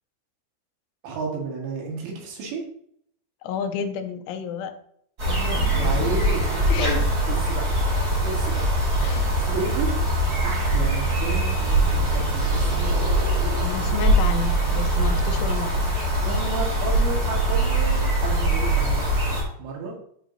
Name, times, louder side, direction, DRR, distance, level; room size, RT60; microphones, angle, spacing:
voice 1, 1.0-2.7 5.7-6.5 6.8-7.0 7.3-7.8 8.2-8.7 9.3-9.9 10.4-13.0 16.2-19.1 19.6-20.0, right 3 dB, 90° right, 0 dB, 4.3 m, -32 dB
voice 2, 3.4-4.7 5.2-5.6 6.7-7.4 9.0-9.5 13.6-15.9, left 7 dB, 90° left, 7 dB, 3.2 m, -31 dB
sound 1, 5.2-19.4, right 1 dB, 40° right, 1.4 m, -22 dB
sound 2, 5.3-7.3 9.0-10.7 12.0-14.3 15.7-15.8, right 6 dB, 75° right, 2.5 m, -37 dB
12.5 x 4.9 x 2.7 m, 0.67 s
omnidirectional pair, 5.4 m